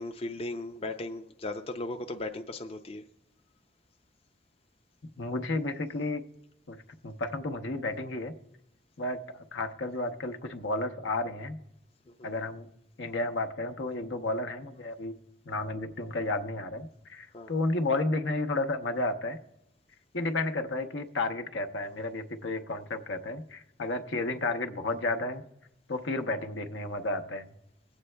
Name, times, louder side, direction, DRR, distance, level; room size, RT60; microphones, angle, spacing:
voice 1, 0.0-3.0 12.2-12.3 17.3-17.5, left 2 dB, 30° left, 5 dB, 0.4 m, -37 dB
voice 2, 5.0-6.2 6.7-6.8 7.0-8.3 9.0-11.6 12.2-12.7 13.0-15.1 15.5-19.4 20.1-25.4 25.9-27.5, left 2 dB, 80° left, 7 dB, 0.8 m, -32 dB
22.5 x 8.1 x 2.2 m, 0.87 s
head